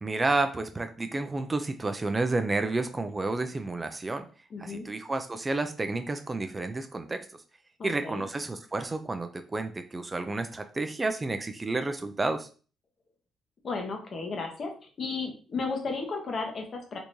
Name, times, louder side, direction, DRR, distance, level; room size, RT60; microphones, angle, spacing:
voice 1, 0.0-4.2 4.6-7.3 7.8-12.5, right 2 dB, 25° right, 8 dB, 0.3 m, -30 dB
voice 2, 4.5-4.8 7.8-8.2 13.6-14.7 15.0-17.0, left 4 dB, 50° left, 3 dB, 1.0 m, -34 dB
3.5 x 3.0 x 2.6 m, 0.38 s
cardioid pair, 90°, 0 cm